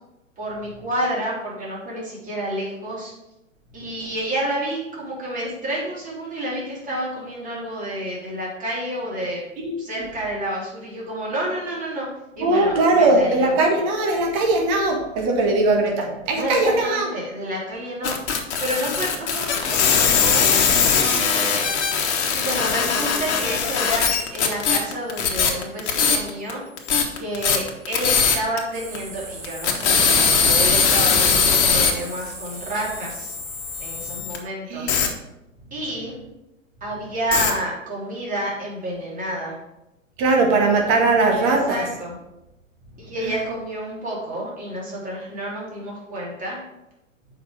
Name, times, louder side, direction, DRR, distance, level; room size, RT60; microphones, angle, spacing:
voice 1, 0.4-3.1 3.7-9.4 9.8-12.1 12.4-13.6 16.3-18.2 18.6-21.7 22.0-22.1 22.3-26.6 27.2-33.3 33.8-35.0 35.7-36.2 36.8-39.6 41.4-42.2 43.0-46.6, right 1 dB, 20° right, -5 dB, 3.2 m, -29 dB
voice 2, 12.4-17.1 34.7-34.9 40.2-41.8 43.2-43.3, right 2 dB, 35° right, 1 dB, 1.9 m, -19 dB
sound 1, 18.0-26.5 26.8-28.6 28.9-29.0 29.4-34.4 34.9-35.1 37.3-37.5, left 6 dB, 55° left, 1.4 m, -20 dB
sound 2, 28.7-34.2, right 4 dB, 75° right, 1.6 m, -38 dB
7.5 x 5.3 x 5.2 m, 0.94 s
figure-of-eight pair, 115°, 40 cm